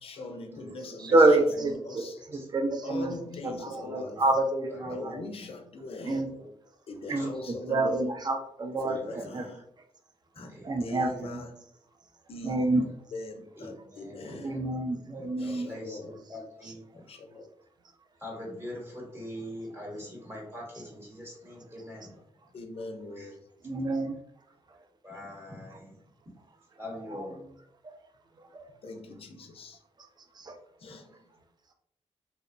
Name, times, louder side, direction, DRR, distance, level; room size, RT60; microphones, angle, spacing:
voice 1, 0.0-2.2 2.8-4.2 4.9-6.3 6.9-8.1 8.8-9.6 10.4-11.6 12.3-12.8 13.1-14.5 15.4-16.2 16.6-17.5 22.5-23.4 28.8-29.8 30.8-31.2, left 2 dB, 60° left, 5 dB, 0.4 m, -42 dB
voice 2, 1.0-3.1 3.4-5.2 6.1-6.3 7.1-9.5 10.6-11.4 12.4-12.9 14.4-15.7 16.6-16.7 23.6-24.2 27.1-27.4 28.5-28.6 30.4-30.5, right 2 dB, 40° right, 4 dB, 0.5 m, -27 dB
voice 3, 2.0-2.5 3.8-4.2 4.8-5.0 6.1-6.5 7.2-7.3 7.5-7.6 8.8-9.5 10.4-11.3 13.6-14.6 15.1-17.0 18.2-22.1 23.2-23.3 24.7-25.9 26.8-27.4, left 1 dB, 20° right, -3 dB, 0.9 m, -43 dB
2.8 x 2.0 x 2.5 m, 0.71 s
cardioid pair, 80°, 11 cm